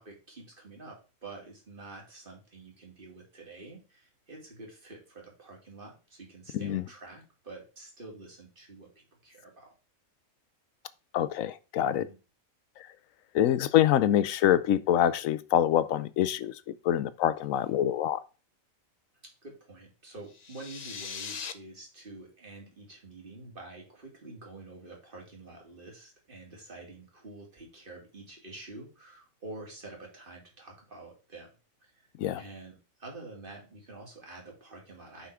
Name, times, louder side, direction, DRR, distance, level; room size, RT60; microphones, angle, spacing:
voice 1, 0.0-9.7 11.9-12.2 19.2-31.5 31.9-32.1 32.4-35.3, right 2 dB, 40° right, 2.7 m, -48 dB
voice 2, 11.1-12.1 13.3-16.5 16.8-18.2 32.2-32.4, left 11 dB, 75° left, 1.0 m, -25 dB
sound 1, 20.3-21.5, left 6 dB, 45° left, 0.5 m, -40 dB
5.8 x 5.7 x 4.8 m
omnidirectional pair, 1.4 m